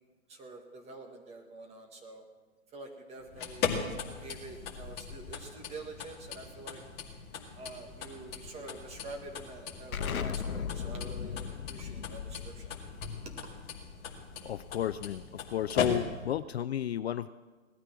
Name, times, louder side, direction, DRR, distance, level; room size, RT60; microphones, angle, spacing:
voice 1, 0.3-2.2 2.7-3.8 4.2-6.8 7.6-12.7 13.2-13.4, right 3 dB, 15° right, 3 dB, 1.8 m, -46 dB
sound 1, 3.2-16.4, left 6 dB, 25° left, 2.2 m, -39 dB
Explosion, 9.9-15.3, left 7 dB, 85° left, 0.9 m, -38 dB
voice 2, 14.4-17.3, left 10 dB, 50° left, 13 dB, 0.5 m, -33 dB
18.5 x 13.0 x 6.1 m, 1.4 s
hypercardioid pair, 140°, 41 cm